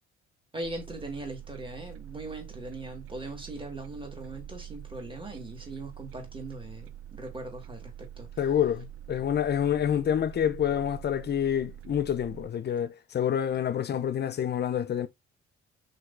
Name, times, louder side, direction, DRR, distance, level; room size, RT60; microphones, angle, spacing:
voice 1, 0.5-8.3, right 2 dB, 15° right, 1.8 m, -40 dB
sound 1, 0.6-12.5, right 11 dB, 45° right, 0.4 m, -45 dB
voice 2, 8.4-15.1, left 9 dB, 30° left, 0.5 m, -27 dB
5.7 x 2.8 x 2.6 m
figure-of-eight pair, 45°, 33 cm